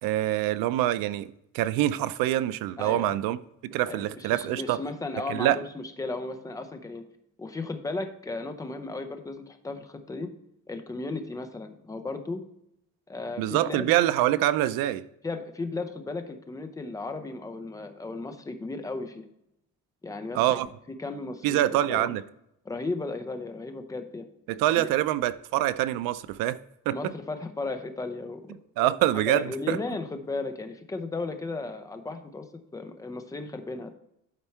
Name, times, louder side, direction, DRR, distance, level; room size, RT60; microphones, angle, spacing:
voice 1, 0.0-3.4 3.6-4.8 5.3-5.6 13.4-15.0 20.3-20.7 21.4-22.2 24.5-26.6 26.9-27.0 28.8-29.8, right 13 dB, 90° right, 0.5 m, -25 dB
voice 2, 2.8-3.1 3.9-7.0 7.4-10.3 10.7-12.4 13.1-13.9 15.2-19.3 20.0-20.6 21.0-22.1 22.7-24.3 24.8-24.9 26.9-28.4 29.1-32.5 32.7-34.0, left 3 dB, 10° left, 0.6 m, -35 dB
10.5 x 4.5 x 4.4 m
cardioid pair, 165°, 33 cm